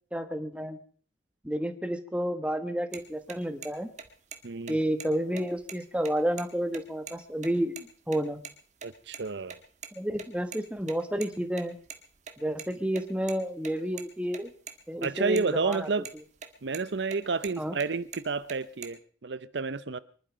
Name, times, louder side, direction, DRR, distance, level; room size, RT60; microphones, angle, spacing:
voice 1, 0.1-0.8 1.4-3.9 4.7-8.4 10.0-11.8 12.4-14.5 14.9-15.9 17.6-17.7, equal, 5° right, 8 dB, 1.2 m, -30 dB
sound 1, 2.9-3.0 3.3-3.4 3.6-3.7 4.0-4.4 4.7-4.8 5.0-5.1 5.4-6.4 6.7-6.8 7.1-7.2 7.4-7.8 8.1-8.5 8.8-9.9 10.1-12.7 13.0-14.7 15.0-15.1 15.4-15.8 16.0-16.5 16.7-17.9 18.1-18.9, right 7 dB, 40° right, 1.7 m, -42 dB
voice 2, 4.4-4.8 8.8-9.6 15.0-16.1 16.6-20.0, right 4 dB, 75° right, 16 dB, 0.7 m, -30 dB
24.0 x 11.5 x 5.1 m, 0.42 s
head